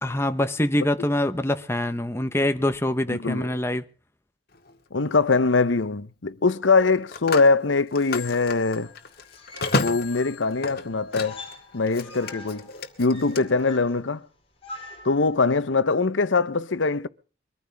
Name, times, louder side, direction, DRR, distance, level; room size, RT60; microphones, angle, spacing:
voice 1, 0.0-3.8, left 1 dB, 15° left, 1.0 m, -24 dB
voice 2, 3.1-3.5 4.9-8.9 9.8-11.4 11.7-12.7 13.0-14.2 15.0-17.1, left 4 dB, 85° left, 0.9 m, -22 dB
Telephone, 4.5-4.8 6.7-11.6 11.9-13.4, left 3 dB, 55° left, 2.0 m, -32 dB
sound 1, 8.5-15.5, left 2 dB, 30° left, 4.1 m, -45 dB
23.0 x 14.5 x 3.5 m
head